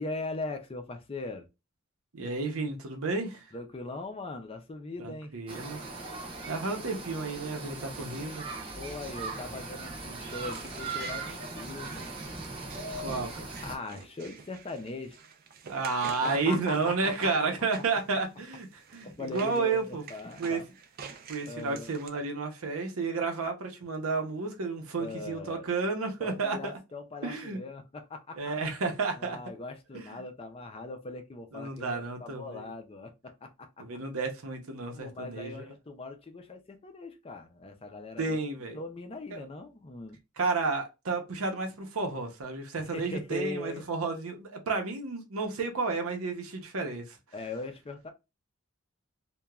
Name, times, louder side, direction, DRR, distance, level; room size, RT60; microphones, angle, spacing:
voice 1, 0.0-1.5 3.5-5.3 8.8-12.4 13.6-15.2 16.2-17.3 19.0-20.7 21.1-21.9 25.0-25.7 26.2-28.4 29.1-33.8 34.9-38.5 38.7-40.2 42.9-43.8 47.3-48.1, left 2 dB, 25° left, 0.4 m, -40 dB
voice 2, 2.1-3.5 5.0-5.9 6.5-8.5 12.9-13.6 15.7-20.0 20.4-20.6 21.3-26.7 27.2-27.6 28.3-29.4 29.9-30.1 31.5-32.7 33.8-35.7 38.2-38.8 39.3-39.4 40.4-47.2, right 4 dB, 85° right, 0.8 m, -32 dB
sound 1, 5.5-13.8, right 3 dB, 25° right, 0.8 m, -39 dB
sound 2, 10.3-22.1, right 6 dB, 45° right, 0.4 m, -49 dB
2.9 x 2.2 x 2.3 m
head